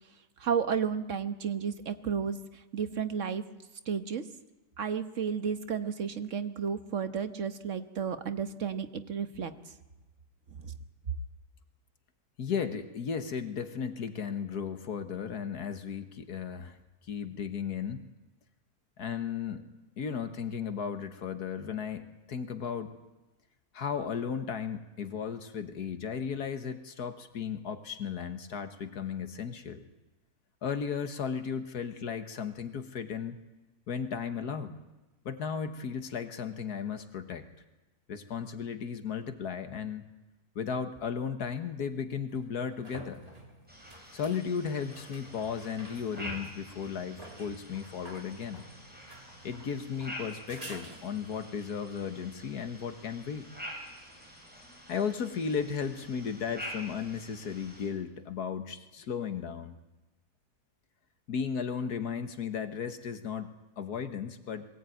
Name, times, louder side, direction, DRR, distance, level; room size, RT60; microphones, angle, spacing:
voice 1, 0.4-2.4 2.7-3.4 3.9-4.2 4.8-9.5 10.6-10.7, right 7 dB, 55° right, 9 dB, 1.5 m, -32 dB
voice 2, 12.4-16.8 17.1-18.0 19.0-19.6 20.0-23.0 23.7-29.8 30.6-33.4 33.9-34.8 35.3-37.5 38.1-40.1 40.6-43.2 44.1-48.7 49.4-53.5 54.9-59.8 61.3-64.7, left 6 dB, 75° left, 9 dB, 1.8 m, -35 dB
sound 1, 41.0-41.1 42.3-51.5 54.9-55.0, right 1 dB, 20° right, 3.1 m, -49 dB
sound 2, 43.7-57.9, equal, 5° right, 6.2 m, -47 dB
22.0 x 17.5 x 9.2 m, 1.1 s
omnidirectional pair, 1.7 m